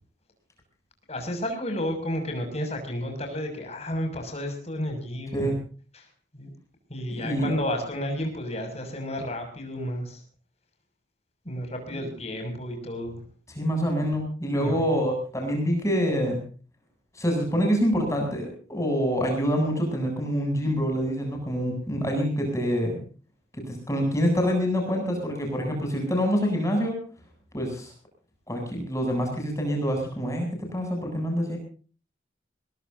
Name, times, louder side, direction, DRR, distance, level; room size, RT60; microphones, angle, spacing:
voice 1, 1.1-5.5 5.9-6.1 6.3-6.5 6.9-10.2 11.4-13.2 14.5-15.0, left 1 dB, 35° left, 4 dB, 6.4 m, -32 dB
voice 2, 7.1-7.5 13.5-16.4 17.1-23.0 23.5-27.0 27.5-27.9 28.5-31.6, equal, 15° left, 2 dB, 8.0 m, -26 dB
22.5 x 21.5 x 2.7 m, 0.40 s
head